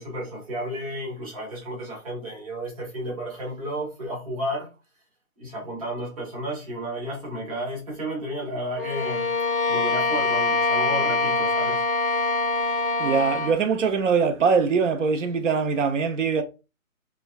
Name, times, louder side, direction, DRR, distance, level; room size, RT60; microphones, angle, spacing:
voice 1, 0.0-4.7 5.4-9.3 9.7-11.8, equal, 25° right, 0.9 m, -32 dB
Bowed string instrument, 8.8-13.6, left 3 dB, 40° left, 0.5 m, -24 dB
voice 2, 13.0-16.4, right 5 dB, 60° right, 0.6 m, -22 dB
2.9 x 2.2 x 2.3 m
hypercardioid pair, 165°, 43 cm